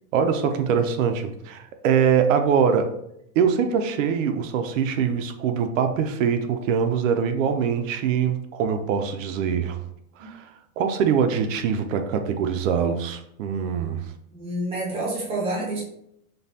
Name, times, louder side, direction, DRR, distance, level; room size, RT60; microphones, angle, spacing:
voice 1, 0.1-2.9 3.4-9.8 10.2-10.5 10.8-14.0, right 7 dB, 60° right, 7 dB, 0.6 m, -23 dB
voice 2, 14.3-15.8, right 1 dB, 15° right, -3 dB, 0.6 m, -28 dB
5.3 x 2.2 x 2.7 m, 0.75 s
supercardioid pair, 170°, 45 cm